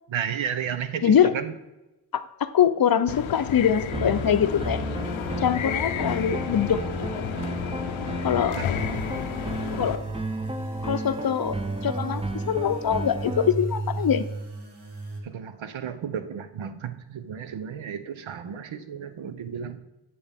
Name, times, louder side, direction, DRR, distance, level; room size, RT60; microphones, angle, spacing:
voice 1, 0.1-1.5 8.6-8.7 15.2-19.8, right 8 dB, 75° right, 11 dB, 0.8 m, -33 dB
voice 2, 1.0-1.3 2.1-4.8 5.4-6.8 8.2-8.7 9.8-10.0 10.8-14.3, left 8 dB, 50° left, 11 dB, 0.6 m, -23 dB
sound 1, 3.1-10.0, left 9 dB, 85° left, 0.6 m, -32 dB
sound 2, 3.9-13.5, right 2 dB, 10° right, 0.6 m, -33 dB
sound 3, 8.7-15.2, right 2 dB, 55° right, 1.5 m, -35 dB
9.6 x 6.9 x 3.5 m, 1.0 s
cardioid pair, 60°, 47 cm